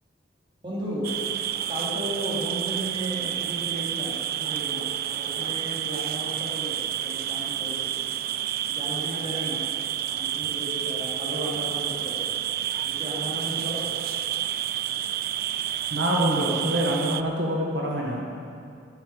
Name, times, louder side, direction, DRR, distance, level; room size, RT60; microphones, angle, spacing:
voice 1, 0.6-1.1 1.7-6.8 7.0-7.9 8.6-9.6 10.1-12.2 12.8-13.8, equal, 30° right, -6 dB, 3.3 m, -34 dB
sound 1, 1.0-17.2, right 11 dB, 55° right, 0.4 m, -30 dB
voice 2, 15.9-18.2, right 1 dB, 85° right, -3 dB, 1.8 m, -25 dB
10.0 x 7.7 x 9.2 m, 2.5 s
head